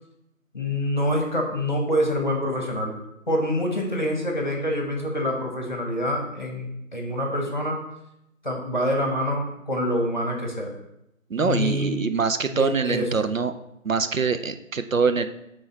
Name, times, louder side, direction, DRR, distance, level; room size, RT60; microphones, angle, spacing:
voice 1, 0.5-2.9 3.3-7.8 8.4-10.7 11.4-12.0 12.4-13.1, equal, 35° left, 1 dB, 1.4 m, -26 dB
voice 2, 11.3-13.5 13.8-15.3, right 5 dB, 70° right, 9 dB, 0.7 m, -24 dB
9.6 x 3.9 x 4.0 m, 0.84 s
figure-of-eight pair, 170°, 41 cm